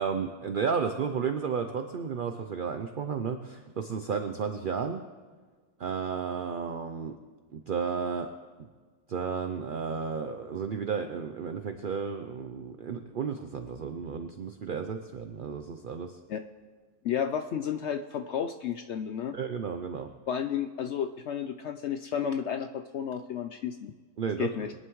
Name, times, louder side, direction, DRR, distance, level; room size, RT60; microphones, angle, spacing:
voice 1, 0.0-5.0 5.8-7.2 7.5-8.3 9.1-16.2 19.3-20.1 24.2-24.5, right 6 dB, 65° right, 6 dB, 0.5 m, -33 dB
voice 2, 17.0-19.4 20.3-23.9 24.4-24.7, left 8 dB, 70° left, 8 dB, 0.6 m, -32 dB
21.5 x 11.0 x 3.1 m, 1.5 s
omnidirectional pair, 1.6 m